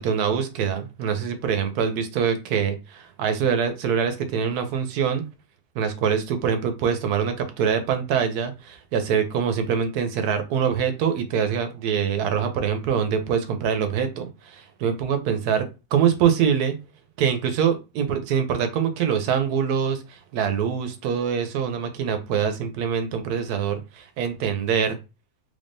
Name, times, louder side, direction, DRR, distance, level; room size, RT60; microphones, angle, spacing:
voice 1, 0.0-5.2 5.7-16.7 17.2-25.0, right 7 dB, 85° right, 8 dB, 1.2 m, -24 dB
3.5 x 3.4 x 2.6 m, 0.28 s
omnidirectional pair, 1.6 m